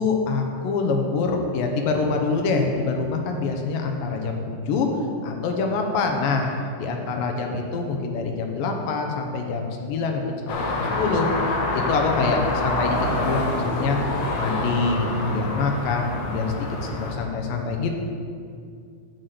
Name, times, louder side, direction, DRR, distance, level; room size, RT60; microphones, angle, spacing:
voice 1, 0.0-4.9 5.2-10.2 10.6-11.3 11.7-16.5 17.0-18.0, left 4 dB, 85° left, 2 dB, 2.6 m, -25 dB
sound 1, 10.5-17.1, left 2 dB, 70° left, 2.2 m, -26 dB
7.7 x 6.1 x 6.8 m, 2.3 s
omnidirectional pair, 3.9 m